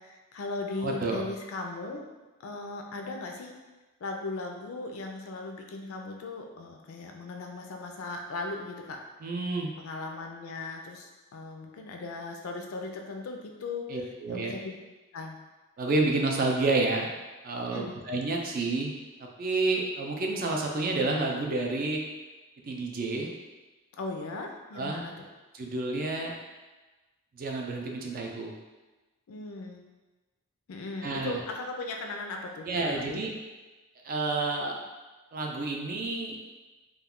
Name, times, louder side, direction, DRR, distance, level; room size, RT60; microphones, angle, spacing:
voice 1, 0.0-2.0 2.4-3.6 4.0-9.0 9.8-13.9 14.3-14.8 15.1-15.4 17.7-18.0 24.0-25.3 29.3-29.8 30.7-33.2, left 3 dB, 75° left, 2 dB, 0.4 m, -38 dB
voice 2, 0.8-1.2 9.2-9.7 13.9-14.5 15.8-17.1 17.4-18.9 19.4-22.0 22.6-23.3 24.7-25.0 25.5-26.3 27.3-28.5 31.0-31.4 32.7-33.3 34.0-34.8 35.3-36.4, right 3 dB, 45° right, 1 dB, 0.4 m, -29 dB
2.3 x 2.2 x 3.5 m, 1.2 s
head